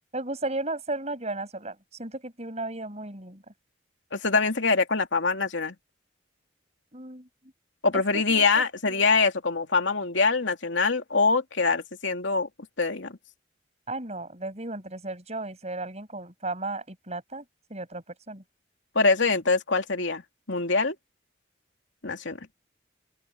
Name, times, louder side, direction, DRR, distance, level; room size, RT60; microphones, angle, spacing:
voice 1, 0.1-3.4 6.9-7.3 7.9-8.4 8.9-9.1 13.9-17.4 17.7-18.4, right 2 dB, 35° right, 7.5 m, -35 dB
voice 2, 4.1-5.8 7.8-12.5 12.8-13.2 18.9-21.0 22.0-22.5, left 4 dB, 80° left, 2.6 m, -24 dB
open air
head